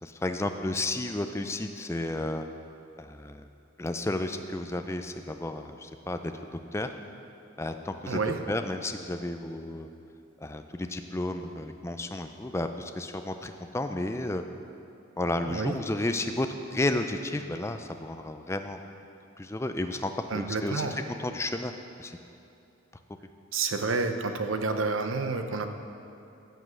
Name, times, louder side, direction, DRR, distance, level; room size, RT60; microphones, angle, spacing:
voice 1, 0.0-2.4 3.0-3.5 3.8-6.3 6.7-6.9 7.6-8.2 8.5-9.9 10.4-14.4 15.2-18.8 19.4-20.9 21.2-21.7 22.0-22.2, left 2 dB, 15° left, 7 dB, 0.4 m, -32 dB
voice 2, 8.1-8.4 15.3-15.8 20.3-20.9 23.5-25.7, right 4 dB, 70° right, 7 dB, 0.7 m, -29 dB
15.5 x 5.3 x 6.2 m, 2.6 s
head